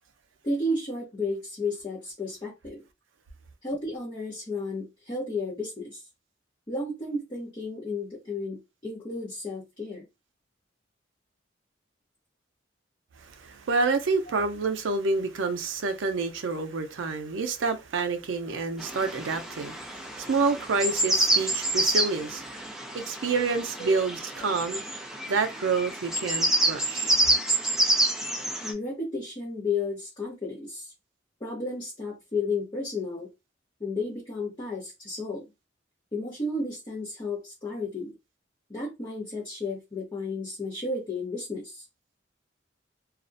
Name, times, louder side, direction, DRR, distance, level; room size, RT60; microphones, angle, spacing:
voice 1, 0.4-2.8 3.6-6.0 6.7-10.0 23.8-24.0 28.6-30.9 31.4-33.3 33.8-35.4 36.1-38.1 38.7-41.8, left 2 dB, 25° left, 0.7 m, -33 dB
voice 2, 13.2-22.4 22.9-24.8 25.2-27.2, right 4 dB, 85° right, 0.5 m, -28 dB
sound 1, 18.8-28.7, right 1 dB, ahead, 0.3 m, -28 dB
2.4 x 2.0 x 2.5 m
head